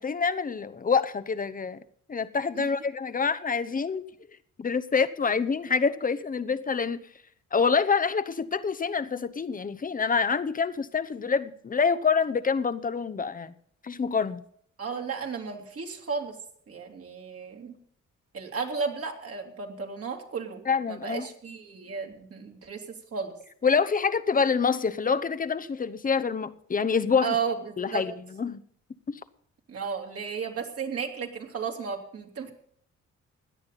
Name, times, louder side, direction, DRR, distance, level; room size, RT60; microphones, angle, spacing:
voice 1, 0.0-1.8 2.1-4.0 4.6-7.0 7.5-13.5 13.8-14.4 20.7-21.3 23.6-27.4 27.8-28.6 29.1-29.2, left 5 dB, 30° left, 0.9 m, -26 dB
voice 2, 14.8-16.4 16.7-17.8 18.3-20.6 20.9-22.8 23.1-23.3 27.2-28.0 29.7-32.5, right 5 dB, 50° right, 2.8 m, -34 dB
17.0 x 11.0 x 4.1 m
cardioid pair, 90°, 30 cm